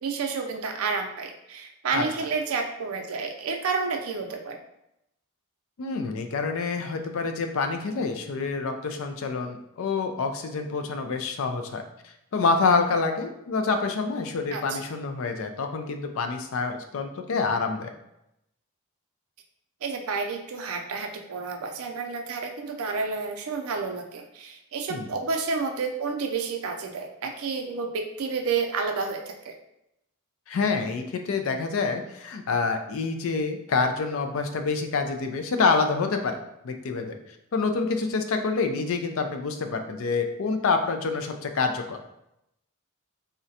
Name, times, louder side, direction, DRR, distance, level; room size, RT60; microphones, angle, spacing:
voice 1, 0.0-4.6 14.5-14.8 19.8-29.5, right 4 dB, 80° right, 4 dB, 0.5 m, -30 dB
voice 2, 5.8-11.8 12.3-17.9 24.9-25.1 30.5-36.4 36.6-37.2 37.5-42.0, left 4 dB, 70° left, 5 dB, 0.4 m, -27 dB
3.7 x 2.1 x 2.7 m, 0.83 s
head